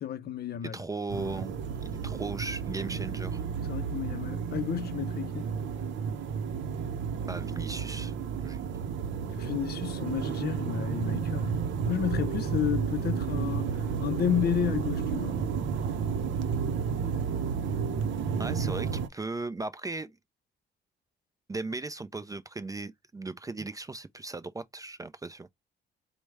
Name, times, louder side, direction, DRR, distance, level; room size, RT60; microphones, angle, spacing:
voice 1, 0.0-0.8 3.7-5.5 9.2-15.4, left 10 dB, 55° left, 0.5 m, -32 dB
voice 2, 0.6-3.4 7.3-8.6 18.4-20.2 21.5-25.5, right 3 dB, 15° right, 0.4 m, -37 dB
sound 1, 1.1-19.1, right 6 dB, 70° right, 0.6 m, -32 dB
4.6 x 2.1 x 3.2 m
cardioid pair, 90°, 20 cm